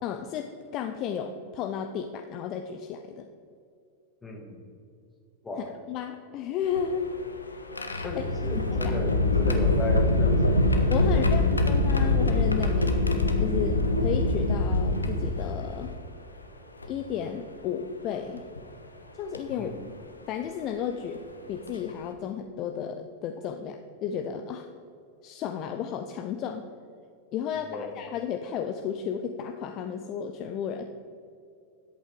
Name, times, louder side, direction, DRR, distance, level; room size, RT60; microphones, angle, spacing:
voice 1, 0.0-3.3 5.6-7.2 7.9-9.0 10.9-12.9 13.4-15.9 16.8-18.4 19.1-19.8 20.3-24.7 25.2-26.7 27.3-30.8, left 8 dB, 35° left, 6 dB, 0.6 m, -33 dB
voice 2, 4.2-4.6 5.4-5.7 8.0-10.7 11.0-11.1 19.6-19.8 27.7-28.0, left 1 dB, 15° left, 2 dB, 1.8 m, -35 dB
sound 1, 6.6-15.9 16.8-16.9 18.4-18.6 19.3-19.5 21.1-21.2 21.7-21.9, left 2 dB, 80° left, 0.9 m, -24 dB
10.5 x 8.3 x 4.7 m, 2.5 s
figure-of-eight pair, 90°, 0 cm